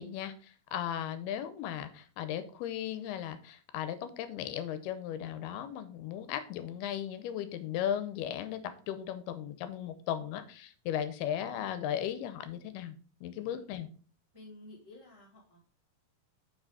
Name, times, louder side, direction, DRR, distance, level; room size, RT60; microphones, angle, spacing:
voice 1, 0.0-13.0 13.2-13.9, left 10 dB, 80° left, 11 dB, 2.6 m, -36 dB
voice 2, 13.3-13.7 14.3-15.7, left 1 dB, 15° right, -5 dB, 1.1 m, -53 dB
6.3 x 5.0 x 5.0 m, 0.40 s
omnidirectional pair, 4.7 m